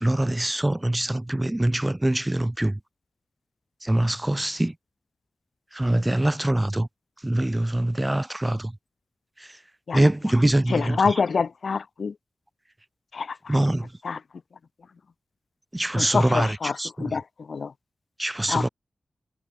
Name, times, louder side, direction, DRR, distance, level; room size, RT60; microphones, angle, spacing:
voice 1, 0.0-2.8 3.8-4.7 5.7-6.9 7.2-8.7 9.4-9.5 9.9-11.2 13.5-13.9 15.7-17.2 18.2-18.7, right 1 dB, 15° right, 1.3 m, -24 dB
voice 2, 10.7-12.1 13.1-13.6 14.0-14.2 16.0-16.7 17.0-17.2 17.5-17.7 18.5-18.7, left 5 dB, 70° left, 1.1 m, -26 dB
wide cardioid pair, 110°, 0 cm